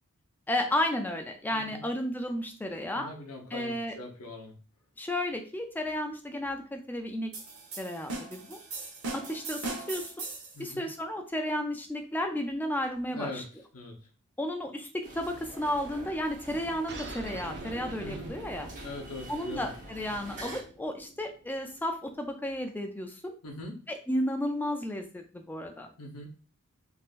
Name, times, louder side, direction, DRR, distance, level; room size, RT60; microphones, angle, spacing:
voice 1, 0.5-3.1 3.5-4.0 5.0-7.3 7.8-8.6 9.1-10.3 10.6-13.4 14.4-18.7 19.3-23.3 23.9-25.9, left 1 dB, 10° left, 4 dB, 0.3 m, -33 dB
voice 2, 1.5-1.8 2.9-4.5 10.5-10.8 13.1-13.4 13.7-14.0 18.0-18.3 18.8-19.7 23.4-23.8 26.0-26.3, left 2 dB, 85° left, 2 dB, 0.9 m, -41 dB
sound 1, 7.3-10.6, right 3 dB, 75° right, 1.1 m, -38 dB
sound 2, 15.0-20.6, right 1 dB, 35° right, 0.9 m, -46 dB
sound 3, 16.9-21.9, right 2 dB, 50° right, 0.6 m, -45 dB
3.6 x 2.7 x 2.4 m, 0.39 s
head